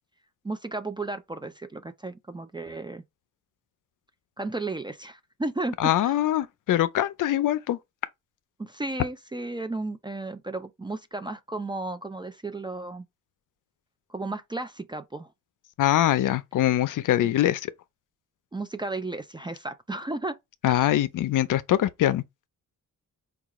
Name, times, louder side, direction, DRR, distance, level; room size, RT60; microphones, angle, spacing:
voice 1, 0.4-3.0 4.4-6.2 8.6-13.0 14.1-15.3 18.5-20.4 20.7-20.9, right 2 dB, 15° right, 0.3 m, -34 dB
voice 2, 5.8-7.8 15.8-17.7 20.6-22.2, left 13 dB, 70° left, 0.5 m, -23 dB
4.7 x 2.3 x 2.9 m
wide cardioid pair, 140°, 33 cm